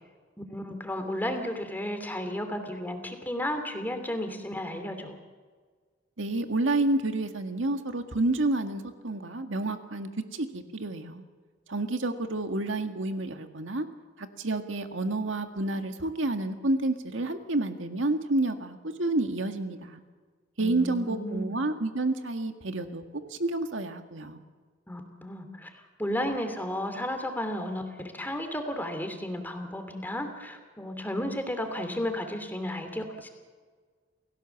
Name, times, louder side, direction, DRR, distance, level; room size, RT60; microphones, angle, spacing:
voice 1, 0.5-5.2 20.6-21.6 24.9-25.7 26.0-27.8 28.1-33.3, left 1 dB, 10° left, 6 dB, 2.8 m, -33 dB
voice 2, 6.2-11.2 11.7-13.9 14.2-20.0 20.6-23.0 23.3-24.4, right 2 dB, 90° right, 6 dB, 1.9 m, -29 dB
29.0 x 16.5 x 7.2 m, 1.5 s
head